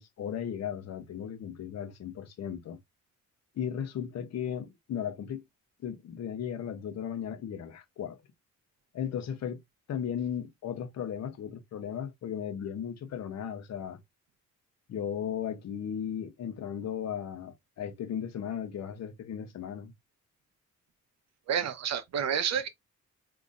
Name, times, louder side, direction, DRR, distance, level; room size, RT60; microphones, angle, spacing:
voice 1, 0.0-2.8 3.6-5.4 5.8-8.2 8.9-9.6 9.9-14.0 14.9-19.9, left 8 dB, 60° left, 0.9 m, -36 dB
voice 2, 21.5-22.7, right 8 dB, 60° right, 0.8 m, -29 dB
3.9 x 2.8 x 2.5 m
cardioid pair, 90°, 30 cm